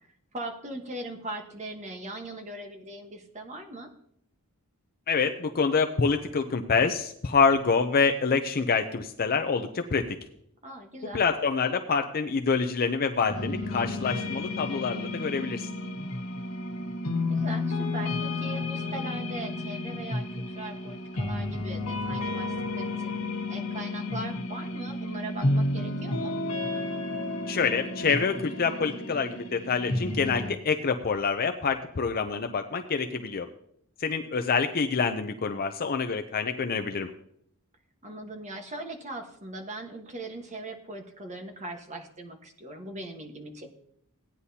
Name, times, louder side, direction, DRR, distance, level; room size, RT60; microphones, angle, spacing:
voice 1, 0.3-3.9 10.6-11.2 17.3-23.1 23.5-26.3 38.0-43.7, right 1 dB, 35° right, 4 dB, 1.3 m, -40 dB
voice 2, 5.1-10.0 11.1-15.7 27.5-33.5 34.0-37.1, left 5 dB, 45° left, 6 dB, 0.5 m, -26 dB
sound 1, 13.3-30.5, left 2 dB, 80° left, 1.5 m, -31 dB
16.0 x 9.7 x 2.8 m, 0.71 s
head